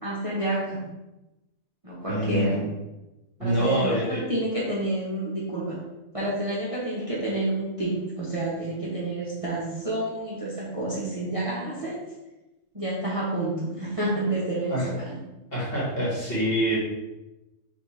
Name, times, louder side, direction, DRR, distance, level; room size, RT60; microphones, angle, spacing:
voice 1, 0.0-0.9 1.8-2.6 3.4-5.8 6.1-12.0 12.7-15.2, right 1 dB, 30° right, -7 dB, 0.9 m, -29 dB
voice 2, 2.1-2.6 3.4-4.2 14.7-14.9 15.5-16.8, right 1 dB, 45° left, -7 dB, 1.9 m, -26 dB
5.1 x 3.3 x 3.1 m, 1.0 s
omnidirectional pair, 1.4 m